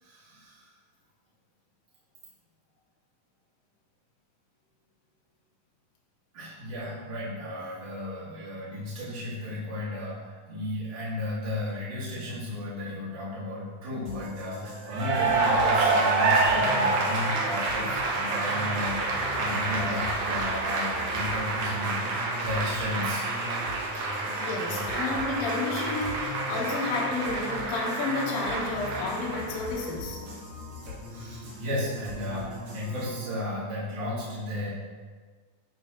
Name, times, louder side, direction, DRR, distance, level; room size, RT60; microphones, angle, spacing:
voice 1, 0.0-0.7 6.3-23.3 30.9-34.7, left 1 dB, 40° right, -10 dB, 2.7 m, -34 dB
sound 1, 14.1-33.3, left 1 dB, 70° right, 3.6 m, -40 dB
Cheering / Applause, 14.9-29.8, right 3 dB, 90° right, 1.3 m, -28 dB
voice 2, 24.4-30.2, left 3 dB, 60° left, -3 dB, 1.7 m, -31 dB
11.0 x 4.5 x 3.0 m, 1.5 s
omnidirectional pair, 4.0 m